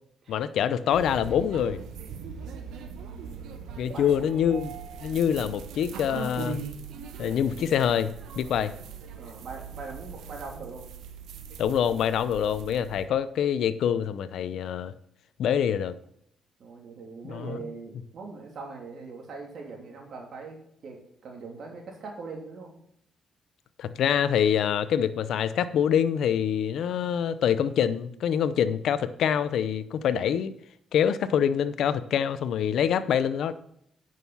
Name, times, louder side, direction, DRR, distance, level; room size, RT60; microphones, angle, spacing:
voice 1, 0.3-1.8 3.8-4.7 5.0-6.6 7.2-8.7 11.6-14.9 15.4-15.9 17.2-17.6 23.8-30.5 30.9-33.5, left 8 dB, 75° left, 13 dB, 0.6 m, -25 dB
sound 1, 0.9-13.1, right 6 dB, 85° right, 1.0 m, -40 dB
voice 2, 2.7-4.2 9.2-10.9 16.6-22.7, right 4 dB, 65° right, 1 dB, 2.9 m, -42 dB
9.1 x 6.5 x 5.6 m, 0.71 s
cardioid pair, 70°, 0 cm